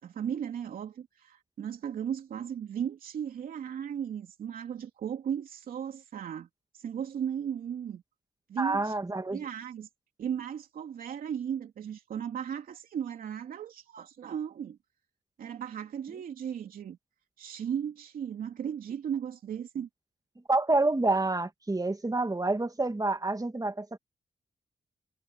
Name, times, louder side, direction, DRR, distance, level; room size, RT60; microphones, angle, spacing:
voice 1, 0.0-6.5 6.7-8.0 8.5-8.9 9.3-9.9 10.2-14.8 15.4-17.0 17.4-19.9, right 8 dB, 80° right, 3.0 m, -36 dB
voice 2, 8.6-9.4 20.5-24.0, right 2 dB, 25° right, 2.0 m, -28 dB
supercardioid pair, 40°, 15 cm